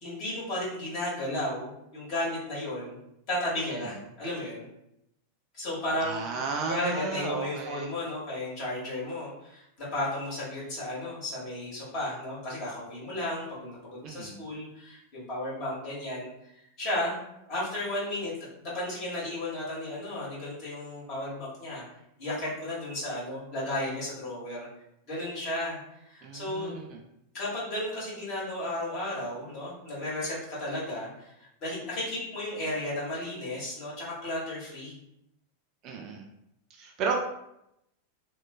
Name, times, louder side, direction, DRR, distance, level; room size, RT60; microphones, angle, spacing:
voice 1, 0.0-2.9 3.3-4.6 5.5-6.2 6.6-16.3 16.8-17.2 17.5-21.8 22.2-24.7 25.1-25.8 26.0-26.7 27.3-35.0, left 1 dB, 40° left, -7 dB, 1.4 m, -34 dB
voice 2, 6.0-7.9 14.0-14.4 26.2-27.0 35.8-36.2 36.7-37.2, right 4 dB, 35° right, 2 dB, 0.3 m, -33 dB
3.0 x 2.2 x 2.2 m, 0.81 s
figure-of-eight pair, 90°, 0 cm